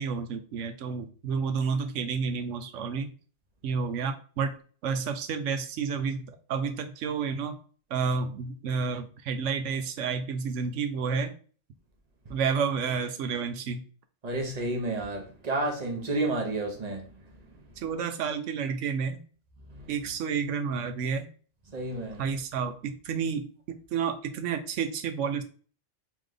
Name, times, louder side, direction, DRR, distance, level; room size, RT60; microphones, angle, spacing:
voice 1, 0.0-3.1 3.6-4.6 4.8-7.6 7.9-11.3 12.3-13.8 17.8-19.2 19.9-21.3 22.2-25.4, right 6 dB, 80° right, 0.9 m, -30 dB
voice 2, 14.2-17.1 19.7-19.9 21.7-22.2, right 2 dB, 35° right, 0.9 m, -31 dB
3.2 x 3.1 x 3.7 m
omnidirectional pair, 1.3 m